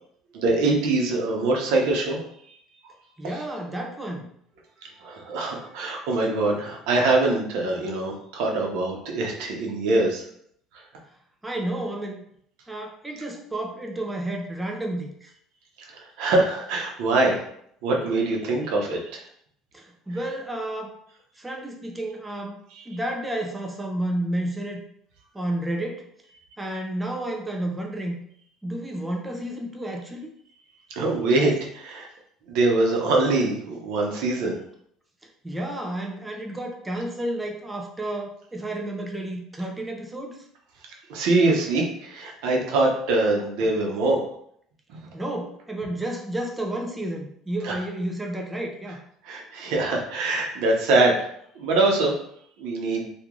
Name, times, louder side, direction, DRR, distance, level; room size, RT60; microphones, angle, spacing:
voice 1, 0.3-2.2 5.0-10.2 15.9-17.4 17.8-19.2 22.7-23.0 31.0-32.1 32.5-34.6 41.1-44.2 44.9-45.0 47.6-47.8 49.2-51.3 51.5-52.1 52.6-53.1, right 2 dB, 75° right, 0 dB, 0.9 m, -23 dB
voice 2, 3.2-4.3 11.4-12.2 12.7-15.3 19.7-20.9 21.4-22.6 22.9-24.8 25.3-26.1 26.6-28.2 28.6-30.3 35.4-40.5 45.1-49.0, right 1 dB, 10° right, 1 dB, 0.4 m, -31 dB
3.0 x 2.4 x 3.6 m, 0.68 s
cardioid pair, 145°, 0 cm